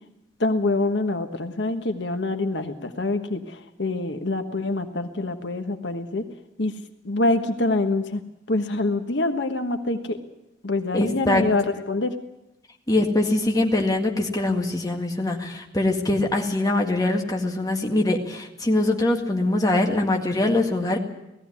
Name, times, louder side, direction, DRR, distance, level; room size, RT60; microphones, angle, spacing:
voice 1, 0.4-6.2 6.6-6.7 7.0-8.2 8.5-10.2 10.6-12.1, left 2 dB, 75° left, 7 dB, 1.3 m, -25 dB
voice 2, 10.9-11.4 12.9-21.0, left 2 dB, 20° left, 1 dB, 1.9 m, -23 dB
18.0 x 15.0 x 9.7 m, 0.91 s
head